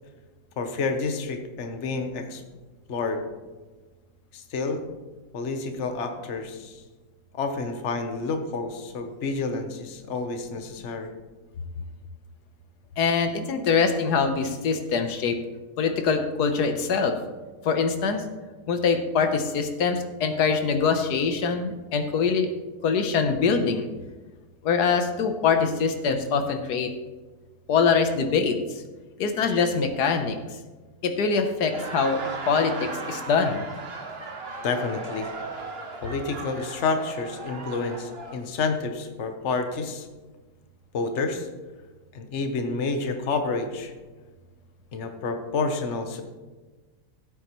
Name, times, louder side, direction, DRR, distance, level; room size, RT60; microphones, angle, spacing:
voice 1, 0.6-2.4 2.9-3.2 4.3-4.8 5.3-6.8 7.3-11.1 34.6-35.3 36.0-40.1 40.9-41.5 42.1-43.9 44.9-46.2, left 4 dB, 50° left, 6 dB, 1.2 m, -29 dB
voice 2, 13.0-15.4 15.8-17.2 17.6-18.2 18.7-22.5 22.8-23.9 24.6-26.9 27.7-28.6 29.2-30.4 31.0-32.2 32.5-33.6, left 5 dB, 85° left, 7 dB, 1.5 m, -23 dB
Laughter, 31.5-38.4, right 3 dB, 45° right, 1.3 m, -37 dB
16.5 x 8.4 x 3.1 m, 1.3 s
omnidirectional pair, 1.7 m